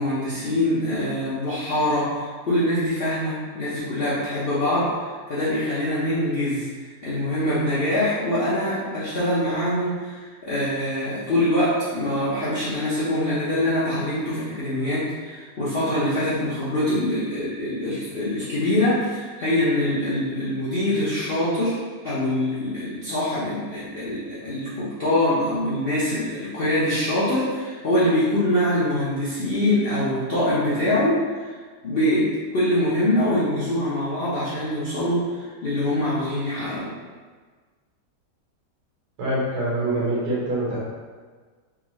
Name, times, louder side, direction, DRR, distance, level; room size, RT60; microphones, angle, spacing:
voice 1, 0.0-31.6 31.8-36.9, left 1 dB, 55° left, -11 dB, 0.6 m, -24 dB
voice 2, 39.2-40.8, right 1 dB, 65° right, -7 dB, 1.7 m, -25 dB
3.6 x 2.4 x 3.0 m, 1.5 s
omnidirectional pair, 1.8 m